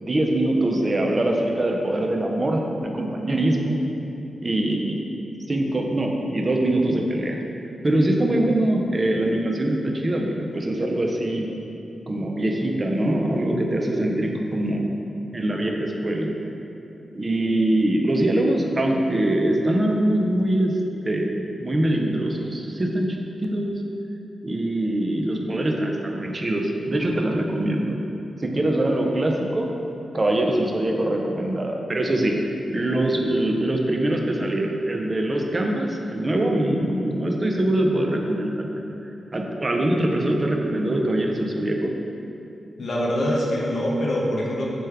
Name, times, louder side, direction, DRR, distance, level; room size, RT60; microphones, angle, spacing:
voice 1, 0.0-3.8 4.4-5.0 5.5-7.4 7.8-11.5 12.1-14.9 15.3-16.3 17.1-20.7 21.0-21.3 21.6-23.8 24.4-28.0 28.4-29.7 30.1-38.8 39.3-41.9, right 1 dB, 35° right, 1 dB, 0.4 m, -23 dB
voice 2, 42.8-44.7, equal, 65° left, -4 dB, 0.5 m, -24 dB
3.3 x 2.2 x 3.3 m, 2.8 s
cardioid pair, 45°, 0 cm